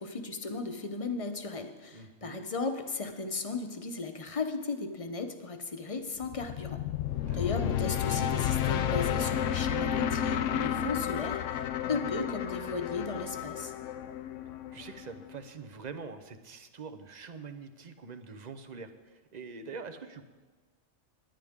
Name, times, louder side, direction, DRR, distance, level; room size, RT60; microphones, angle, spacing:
voice 1, 0.0-6.8 7.3-13.7, left 4 dB, 30° left, 6 dB, 0.9 m, -36 dB
voice 2, 1.9-2.4 7.3-7.8 14.7-20.2, right 4 dB, 40° right, 9 dB, 0.8 m, -45 dB
sound 1, 6.2-15.4, left 9 dB, 80° left, 0.9 m, -32 dB
18.0 x 11.0 x 3.6 m, 1.4 s
omnidirectional pair, 1.3 m